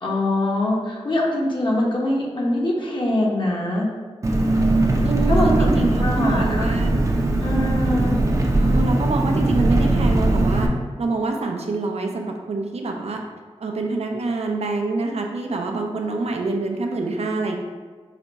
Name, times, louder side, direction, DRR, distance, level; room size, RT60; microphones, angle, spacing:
voice 1, 0.0-3.9 5.3-6.7 7.4-8.2, left 1 dB, 50° left, -4 dB, 0.9 m, -23 dB
Engine, 4.2-10.7, right 2 dB, 30° right, 0.5 m, -20 dB
voice 2, 5.0-7.0 8.6-10.7 11.0-13.2 13.6-17.6, right 3 dB, 75° right, 2 dB, 0.5 m, -26 dB
4.9 x 2.2 x 4.0 m, 1.5 s
wide cardioid pair, 85°, 11 cm